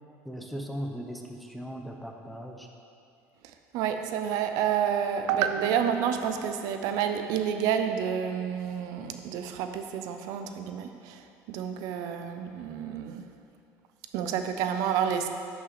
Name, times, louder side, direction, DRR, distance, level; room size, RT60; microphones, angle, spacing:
voice 1, 0.2-2.7, equal, ahead, 2 dB, 0.8 m, -38 dB
voice 2, 3.4-13.2 14.1-15.3, right 8 dB, 70° right, 7 dB, 0.7 m, -29 dB
10.5 x 6.2 x 4.1 m, 2.5 s
cardioid pair, 125°, 6 cm